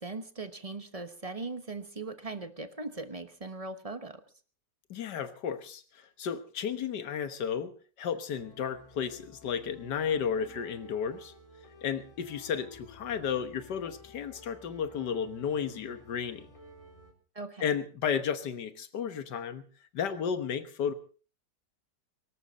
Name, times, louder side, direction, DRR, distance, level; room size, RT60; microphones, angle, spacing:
voice 1, 0.0-4.2 17.3-17.6, right 3 dB, 25° right, 10 dB, 1.0 m, -39 dB
voice 2, 4.9-7.7 8.0-11.3 11.8-16.5 17.6-19.7 19.9-20.9, left 7 dB, 75° left, 11 dB, 1.8 m, -33 dB
sound 1, 8.4-17.1, left 1 dB, 20° left, 3.6 m, -53 dB
23.5 x 13.5 x 4.1 m, 0.38 s
omnidirectional pair, 1.8 m